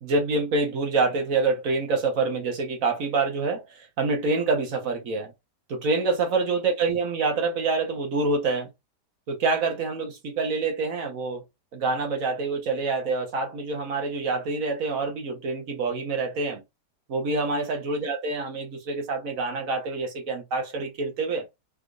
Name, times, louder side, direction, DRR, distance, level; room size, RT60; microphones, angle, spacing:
voice 1, 0.0-5.3 5.7-8.7 9.3-11.4 11.7-16.6 17.1-21.4, right 3 dB, 60° right, 1.2 m, -26 dB
3.6 x 3.3 x 2.3 m
omnidirectional pair, 1.8 m